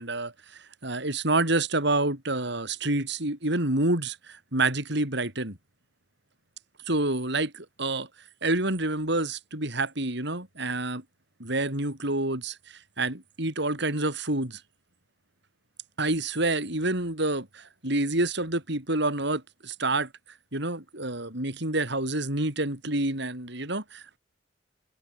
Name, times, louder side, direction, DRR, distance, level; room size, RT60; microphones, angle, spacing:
voice 1, 0.0-5.6 6.9-8.1 8.4-11.0 11.4-12.6 13.0-14.6 16.0-20.1 20.5-24.2, right 2 dB, 65° right, 6.6 m, -28 dB
head